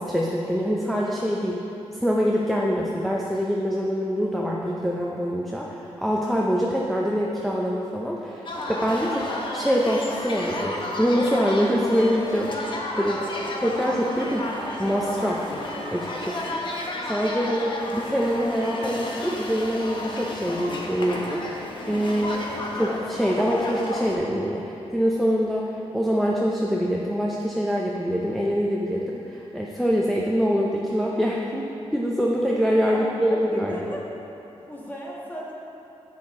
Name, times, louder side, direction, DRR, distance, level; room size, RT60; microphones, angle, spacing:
voice 1, 0.0-1.6 2.0-12.5 13.0-13.2 13.6-14.5 14.8-15.4 15.9-34.0, equal, ahead, -3 dB, 0.6 m, -25 dB
sound 1, 8.5-24.2, left 1 dB, 45° left, 0.9 m, -32 dB
voice 2, 13.1-13.5 32.8-34.0 34.6-35.5, equal, 15° left, -4 dB, 1.5 m, -37 dB
7.9 x 5.9 x 3.7 m, 2.9 s
cardioid pair, 90°, 11 cm